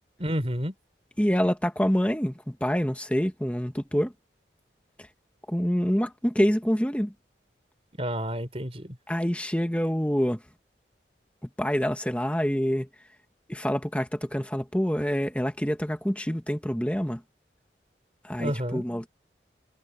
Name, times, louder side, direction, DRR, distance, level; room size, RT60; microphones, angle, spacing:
voice 1, 0.2-0.7 8.0-9.0 18.4-18.9, equal, 35° right, 4.6 m, -30 dB
voice 2, 1.2-4.1 5.5-7.1 9.1-10.4 11.6-12.9 13.5-17.2 18.2-19.1, equal, 5° left, 1.5 m, -26 dB
head